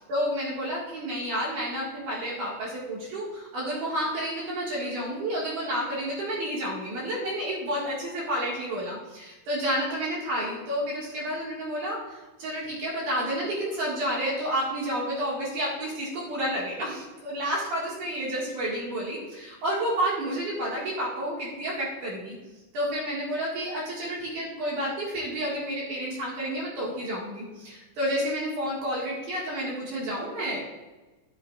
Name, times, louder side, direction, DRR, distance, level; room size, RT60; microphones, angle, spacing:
voice 1, 0.1-22.4 22.7-30.6, equal, 65° right, -6 dB, 3.3 m, -30 dB
11.5 x 9.7 x 2.5 m, 1.1 s
omnidirectional pair, 3.9 m